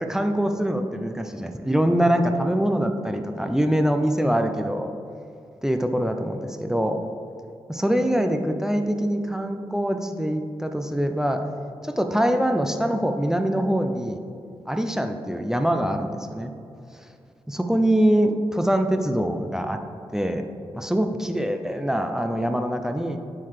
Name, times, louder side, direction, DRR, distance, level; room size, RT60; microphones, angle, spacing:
voice 1, 0.0-4.9 5.6-7.0 7.7-11.4 11.8-14.2 14.7-16.5 17.5-19.8 20.1-20.4 20.7-23.2, equal, 5° right, 6 dB, 0.4 m, -24 dB
8.3 x 3.9 x 3.2 m, 2.5 s
cardioid pair, 55°, 11 cm